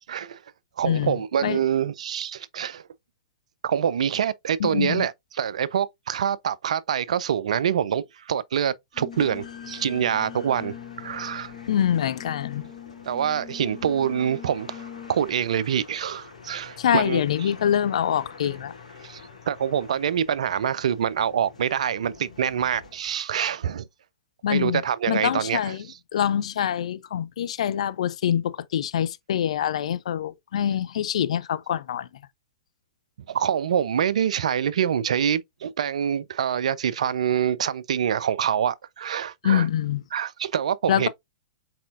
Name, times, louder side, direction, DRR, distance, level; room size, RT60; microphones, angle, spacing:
voice 1, 0.1-0.4 0.8-2.8 3.6-11.5 13.0-17.5 19.0-23.9 24.5-25.7 33.3-39.7 40.1-41.1, right 8 dB, 65° right, 0.4 m, -26 dB
voice 2, 4.6-5.1 11.7-12.7 16.8-18.7 24.4-24.8 25.1-25.8 26.1-32.1 39.4-40.0 40.9-41.1, left 9 dB, 60° left, 0.4 m, -25 dB
Brass instrument, 8.9-15.3, left 9 dB, 30° left, 2.0 m, -42 dB
sound 1, 9.1-23.4, left 5 dB, 80° left, 2.1 m, -47 dB
4.3 x 4.2 x 2.5 m
figure-of-eight pair, 110°, 4 cm